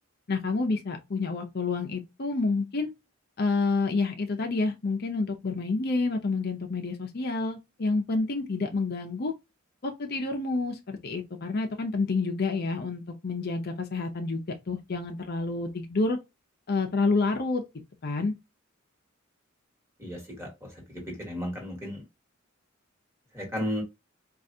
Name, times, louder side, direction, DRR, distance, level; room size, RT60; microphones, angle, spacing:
voice 1, 0.3-2.9 3.4-9.3 9.8-16.2 16.7-17.6 18.0-18.3, left 3 dB, 50° left, 0.6 m, -28 dB
voice 2, 20.0-20.5 21.2-22.0 23.3-23.8, equal, 15° right, 1.4 m, -33 dB
4.7 x 2.4 x 2.6 m
head